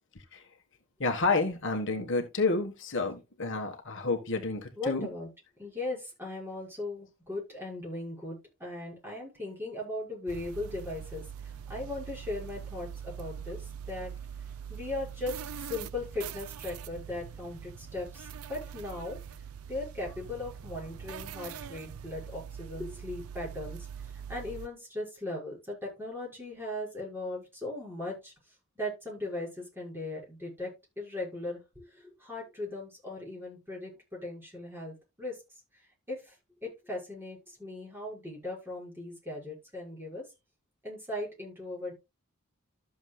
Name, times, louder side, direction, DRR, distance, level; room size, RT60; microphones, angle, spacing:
voice 1, 1.0-5.1, left 3 dB, 60° left, 1.6 m, -30 dB
voice 2, 4.8-5.3 5.6-11.2 11.7-14.1 14.7-15.4 15.7-19.2 19.7-28.3 28.8-30.7 31.0-35.4 36.1-36.3 36.6-40.2 40.8-41.9, left 2 dB, 10° right, 5.9 m, -38 dB
sound 1, 10.3-24.7, right 8 dB, 75° right, 0.6 m, -43 dB
13.0 x 7.2 x 2.4 m
head